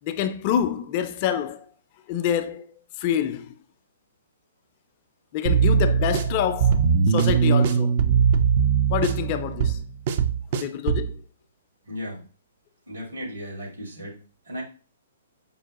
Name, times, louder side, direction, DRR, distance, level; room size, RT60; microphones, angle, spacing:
voice 1, 0.0-1.6 2.1-2.7 3.0-3.5 5.3-8.0 8.9-9.8 10.5-11.2, left 10 dB, 40° left, 0.4 m, -27 dB
sound 1, 5.5-11.1, right 6 dB, 45° right, 0.4 m, -21 dB
voice 2, 11.8-12.2 12.9-14.2 14.4-14.6, equal, 80° right, 2.1 m, -35 dB
5.3 x 2.1 x 2.9 m
figure-of-eight pair, 125°, 0 cm